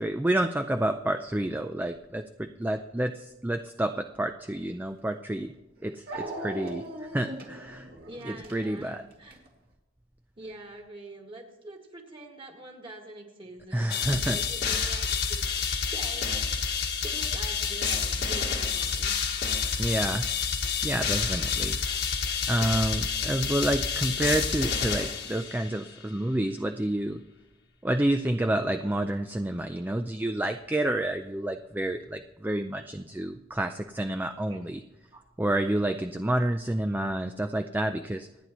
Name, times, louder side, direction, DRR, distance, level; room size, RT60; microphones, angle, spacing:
voice 1, 0.0-5.5 5.8-6.8 7.1-7.9 8.2-9.0 13.7-14.4 14.7-15.0 19.8-20.3 20.8-21.8 22.5-27.2 27.8-34.8 35.4-38.3, right 1 dB, 10° right, 7 dB, 0.4 m, -29 dB
Dog, 5.0-5.1 6.1-9.5, right 1 dB, 50° right, 2.4 m, -39 dB
voice 2, 8.0-9.4 10.4-16.4 16.8-19.3 34.5-34.6 35.1-35.2, right 1 dB, 30° right, 1 dB, 2.1 m, -45 dB
sound 1, 13.9-25.8, left 5 dB, 60° left, 1.5 m, -29 dB
27.0 x 9.7 x 3.1 m, 0.99 s
head